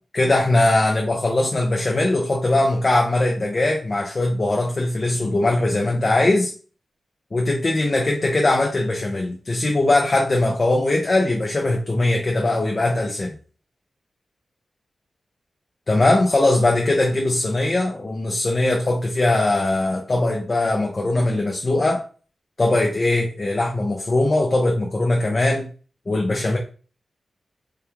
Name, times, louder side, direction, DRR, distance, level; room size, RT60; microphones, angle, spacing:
voice 1, 0.1-6.5 7.3-13.3 15.9-22.0 22.6-25.7 26.1-26.6, left 2 dB, 45° left, 0 dB, 0.5 m, -20 dB
2.3 x 2.2 x 3.0 m, 0.39 s
cardioid pair, 55°, 0 cm